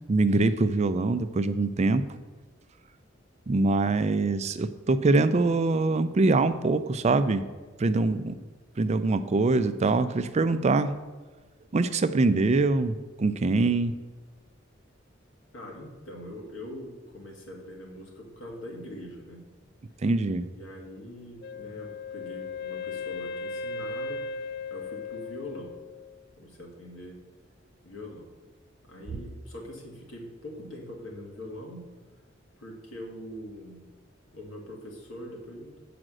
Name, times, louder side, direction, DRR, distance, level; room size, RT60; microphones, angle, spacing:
voice 1, 0.1-2.0 3.5-7.5 7.8-8.4 8.8-10.9 11.7-13.9 20.0-20.5, right 3 dB, 35° right, 11 dB, 0.4 m, -24 dB
voice 2, 15.5-19.4 20.6-24.2 24.7-25.8 26.4-27.2 27.8-28.3 28.8-31.9 32.6-33.8 34.3-35.8, left 1 dB, 90° left, 0 dB, 2.0 m, -42 dB
Wind instrument woodwind instrument, 21.4-26.3, left 4 dB, 55° left, 0.3 m, -37 dB
7.7 x 5.0 x 6.2 m, 1.3 s
head